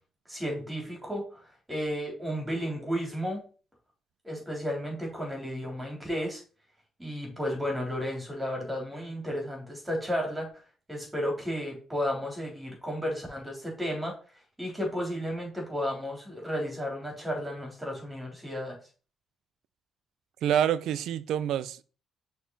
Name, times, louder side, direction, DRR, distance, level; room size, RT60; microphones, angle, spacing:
voice 1, 0.3-3.4 4.2-6.4 7.0-10.5 10.9-14.1 14.6-18.8, equal, 10° right, 3.3 m, -33 dB
voice 2, 20.4-21.8, right 10 dB, 80° right, 0.4 m, -27 dB
6.2 x 4.1 x 3.9 m
cardioid pair, 90°, 0 cm